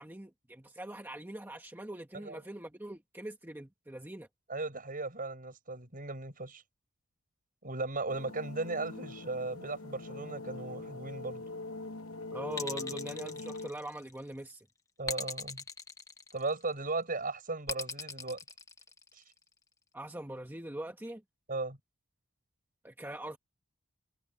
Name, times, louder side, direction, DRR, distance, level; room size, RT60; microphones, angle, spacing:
voice 1, 0.0-4.3 12.3-14.7 19.9-21.2 22.8-23.4, right 1 dB, 10° right, 1.3 m, -42 dB
voice 2, 4.5-6.6 7.6-11.4 15.0-15.6 16.3-18.4 21.5-21.8, right 3 dB, 40° right, 6.3 m, -37 dB
sound 1, 8.1-13.7, left 2 dB, 80° left, 1.1 m, -43 dB
sound 2, 12.5-14.2 15.1-16.7 17.7-19.3, left 4 dB, 15° left, 1.3 m, -40 dB
head